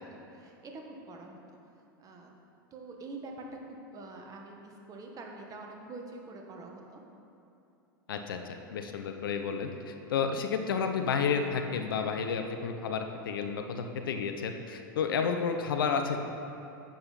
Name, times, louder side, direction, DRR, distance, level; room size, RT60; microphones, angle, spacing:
voice 1, 0.0-1.4 2.0-2.3 2.7-7.0, right 2 dB, 30° right, 1 dB, 1.5 m, -45 dB
voice 2, 8.1-16.2, left 6 dB, 75° left, 6 dB, 0.7 m, -31 dB
10.5 x 7.5 x 4.1 m, 2.8 s
hypercardioid pair, 90°, 12 cm